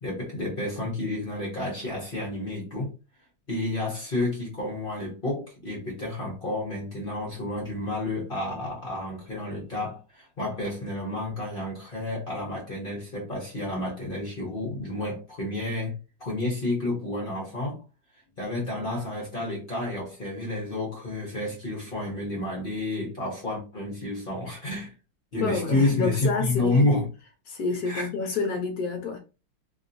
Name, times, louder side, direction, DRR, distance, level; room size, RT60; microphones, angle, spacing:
voice 1, 0.0-2.9 3.5-15.9 16.2-17.8 18.4-24.9 25.3-27.1 27.8-28.1, left 2 dB, 45° left, 0.7 m, -30 dB
voice 2, 25.4-26.8 27.5-29.2, left 4 dB, 65° left, 0.9 m, -28 dB
3.1 x 2.8 x 2.6 m
omnidirectional pair, 2.3 m